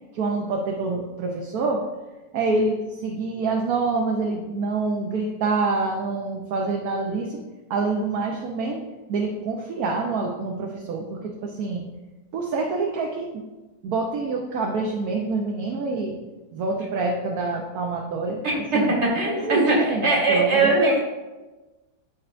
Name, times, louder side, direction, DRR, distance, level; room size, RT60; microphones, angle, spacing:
voice 1, 0.1-1.8 2.3-7.4 7.7-8.8 9.1-11.8 12.3-13.4 13.8-16.1 16.5-18.4 18.7-19.0 19.3-21.0, right 3 dB, 65° right, 1 dB, 1.1 m, -26 dB
voice 2, 18.4-21.0, right 2 dB, 40° right, -3 dB, 2.1 m, -21 dB
13.0 x 4.4 x 2.5 m, 1.2 s
omnidirectional pair, 1.8 m